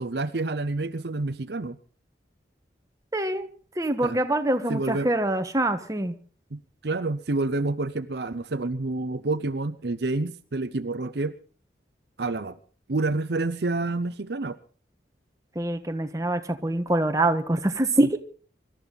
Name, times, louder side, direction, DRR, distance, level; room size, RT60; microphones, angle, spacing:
voice 1, 0.0-1.8 4.0-4.2 4.7-5.1 6.5-11.3 12.2-12.6 12.9-14.6 18.0-18.2, right 2 dB, 60° right, 11 dB, 0.7 m, -28 dB
voice 2, 3.1-3.5 3.8-6.1 15.5-18.2, right 1 dB, 20° right, 7 dB, 1.3 m, -25 dB
25.0 x 13.0 x 4.0 m, 0.40 s
head